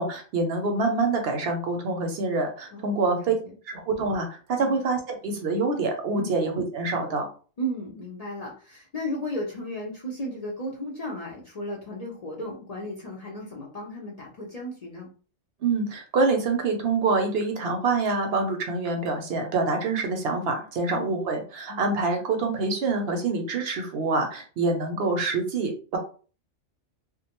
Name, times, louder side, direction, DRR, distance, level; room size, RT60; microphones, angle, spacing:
voice 1, 0.0-3.3 3.7-7.3 15.6-26.0, right 3 dB, 65° right, 4 dB, 0.7 m, -26 dB
voice 2, 2.7-3.5 4.6-4.8 6.2-6.3 7.6-15.1 20.9-21.2 21.7-21.9, equal, 45° left, -3 dB, 0.5 m, -35 dB
2.4 x 2.1 x 2.9 m, 0.38 s
omnidirectional pair, 1.2 m